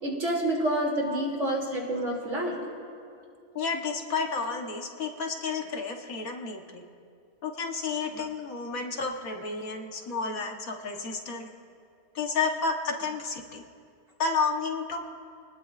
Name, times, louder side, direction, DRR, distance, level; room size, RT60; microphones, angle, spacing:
voice 1, 0.0-2.6, right 1 dB, 55° right, -2 dB, 3.2 m, -28 dB
voice 2, 3.5-6.8 7.4-11.5 12.1-13.6 14.2-15.0, left 4 dB, 75° left, 2 dB, 1.7 m, -31 dB
28.0 x 19.5 x 2.5 m, 2.3 s
omnidirectional pair, 1.5 m